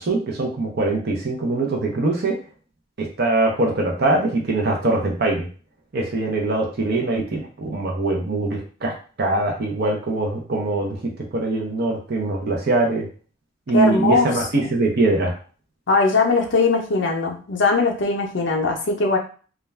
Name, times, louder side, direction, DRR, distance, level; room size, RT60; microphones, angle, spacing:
voice 1, 0.0-2.4 3.0-5.5 5.9-8.9 9.2-11.0 11.3-13.1 13.7-15.3, right 2 dB, 50° right, -1 dB, 0.6 m, -22 dB
voice 2, 13.7-14.3 15.9-19.2, left 3 dB, 60° left, 2 dB, 0.5 m, -20 dB
2.3 x 2.2 x 3.1 m, 0.39 s
head